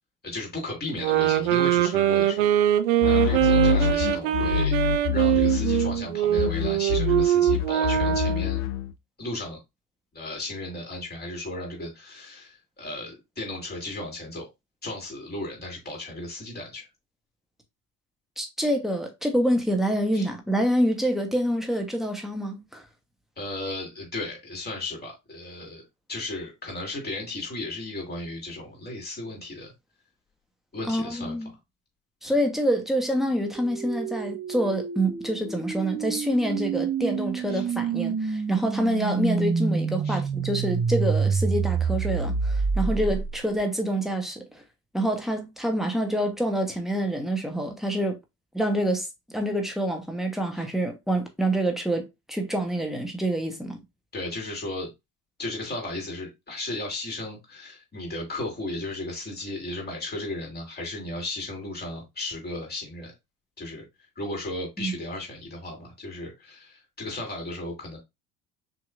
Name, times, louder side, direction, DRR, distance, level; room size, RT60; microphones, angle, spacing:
voice 1, 0.2-4.8 5.1-8.6 9.2-9.6 10.1-14.5 14.8-16.8 20.1-20.3 23.4-29.7 30.7-31.4 37.5-37.6 40.0-40.2 50.5-50.6 54.1-54.9 55.4-63.1 63.6-63.8 64.2-68.0, left 2 dB, 20° left, 3.1 m, -35 dB
sound 1, 1.0-8.5, right 12 dB, 60° right, 0.7 m, -22 dB
sound 2, 3.0-6.1 6.4-8.9, left 9 dB, 65° left, 0.7 m, -26 dB
voice 2, 18.4-22.8 30.9-31.5 32.2-44.5 44.9-48.2 48.5-49.1 49.3-53.8 64.8-64.9, right 1 dB, ahead, 1.2 m, -26 dB
sound 3, 33.5-43.6, right 5 dB, 20° right, 0.6 m, -28 dB
6.0 x 3.0 x 2.5 m
figure-of-eight pair, 55°, 46 cm